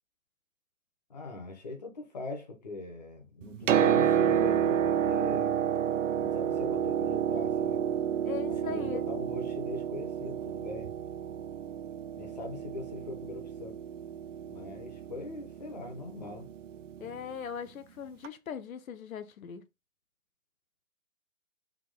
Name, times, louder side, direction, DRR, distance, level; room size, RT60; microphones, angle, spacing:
voice 1, 1.1-5.6 6.1-7.8 8.5-10.9 12.2-13.8 14.4-16.5, left 3 dB, 30° left, 0.8 m, -41 dB
Piano, 3.4-17.2 18.2-18.3, right 9 dB, 65° right, 0.5 m, -30 dB
voice 2, 8.2-9.0 17.0-19.6, left 8 dB, 85° left, 0.7 m, -40 dB
3.6 x 2.8 x 3.6 m
hypercardioid pair, 175°, 40 cm